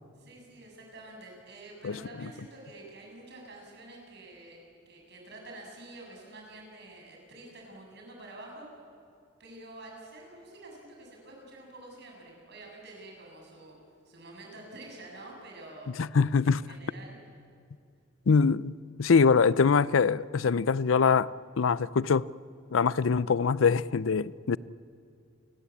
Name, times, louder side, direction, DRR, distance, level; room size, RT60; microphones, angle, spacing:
voice 1, 0.2-8.7 9.4-13.8 14.1-15.9 16.4-17.2, right 2 dB, 60° right, 7.3 m, -48 dB
voice 2, 16.0-16.6 18.3-21.3 21.6-22.3 22.7-24.6, left 5 dB, 90° left, 0.5 m, -23 dB
29.5 x 20.0 x 8.5 m
head